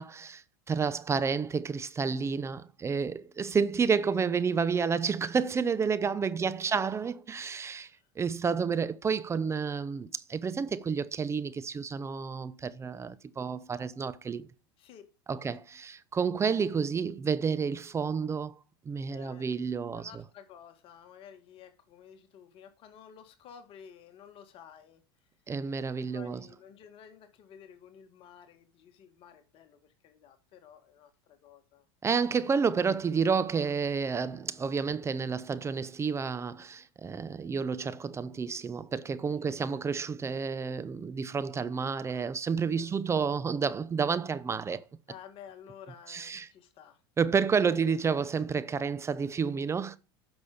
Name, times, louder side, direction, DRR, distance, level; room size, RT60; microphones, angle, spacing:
voice 1, 0.0-7.9 8.2-14.5 15.3-18.5 18.9-20.1 25.5-26.4 32.0-44.8 46.1-46.5 47.2-50.0, right 5 dB, 20° right, 0.8 m, -30 dB
voice 2, 6.4-6.9 7.8-8.1 14.8-15.0 15.4-15.6 19.1-19.5 19.9-25.0 26.1-31.9 39.4-39.6 42.7-43.0 45.1-47.0 47.7-47.8, left 8 dB, 45° left, 2.0 m, -52 dB
10.0 x 6.3 x 5.1 m
hypercardioid pair, 95°, 12 cm